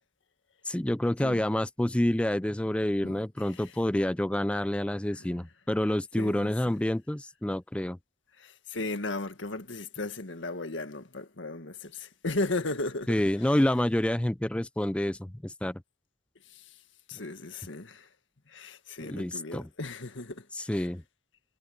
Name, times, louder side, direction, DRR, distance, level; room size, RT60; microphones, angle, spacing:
voice 1, 0.6-8.0 13.1-15.8 19.0-19.7 20.5-21.0, left 1 dB, 5° left, 0.3 m, -28 dB
voice 2, 3.0-3.6 5.2-5.3 6.2-6.5 8.4-13.5 16.5-16.6 17.1-18.1 18.5-20.9, left 2 dB, 85° left, 1.8 m, -36 dB
head